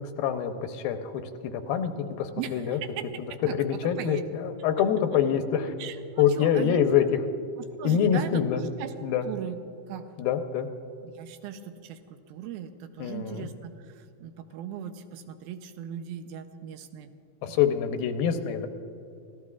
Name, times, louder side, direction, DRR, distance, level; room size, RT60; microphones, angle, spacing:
voice 1, 0.0-2.8 3.2-5.7 6.2-7.2 7.8-8.7 9.0-9.3 10.2-10.7 13.0-13.5 17.4-18.7, left 8 dB, 85° left, 7 dB, 2.6 m, -26 dB
voice 2, 5.8-6.8 7.8-8.9 9.2-9.6 9.9-10.1 11.0-12.0 12.3-13.7 14.2-17.1 17.5-17.6, right 10 dB, 90° right, 8 dB, 2.6 m, -38 dB
27.5 x 15.5 x 2.4 m, 2.6 s
omnidirectional pair, 4.1 m